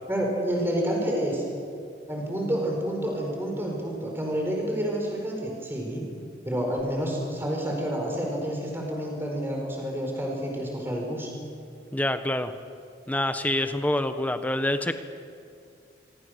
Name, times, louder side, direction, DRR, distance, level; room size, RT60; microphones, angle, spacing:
voice 1, 0.1-1.4 2.1-6.0 6.4-11.3, equal, 15° right, 0 dB, 4.7 m, -29 dB
voice 2, 11.9-12.5 13.1-14.9, left 1 dB, 10° left, 9 dB, 1.0 m, -26 dB
26.0 x 23.0 x 6.6 m, 2.4 s
head